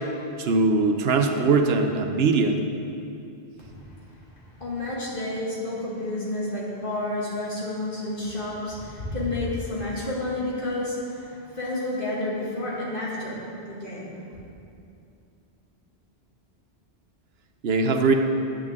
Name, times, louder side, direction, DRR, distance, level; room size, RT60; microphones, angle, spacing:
voice 1, 0.4-2.6 17.6-18.1, right 4 dB, 70° right, 5 dB, 0.9 m, -21 dB
voice 2, 3.6-14.2, left 2 dB, 55° left, -7 dB, 2.2 m, -30 dB
10.5 x 8.6 x 3.6 m, 2.6 s
omnidirectional pair, 1.1 m